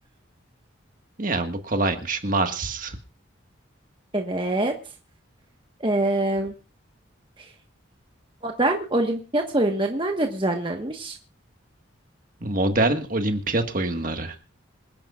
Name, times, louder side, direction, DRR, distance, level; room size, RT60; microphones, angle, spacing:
voice 1, 1.2-3.0 12.4-14.4, right 2 dB, 40° right, 6 dB, 1.7 m, -25 dB
voice 2, 4.1-4.7 5.8-6.5 7.4-7.5 8.4-11.1, right 1 dB, 25° right, 3 dB, 1.3 m, -24 dB
26.0 x 10.5 x 2.5 m, 0.34 s
head